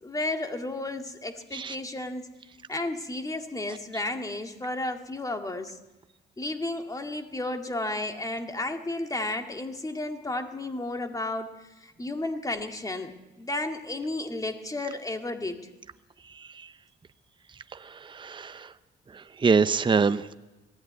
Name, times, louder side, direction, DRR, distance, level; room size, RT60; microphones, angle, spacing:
voice 1, 0.0-2.3 2.7-5.8 6.4-11.5 11.8-13.1 13.4-15.6, left 2 dB, 15° left, 5 dB, 2.1 m, -32 dB
voice 2, 17.8-18.7 19.1-20.3, right 5 dB, 25° right, 12 dB, 0.7 m, -25 dB
20.5 x 14.5 x 9.5 m, 1.0 s
cardioid pair, 90°, 20 cm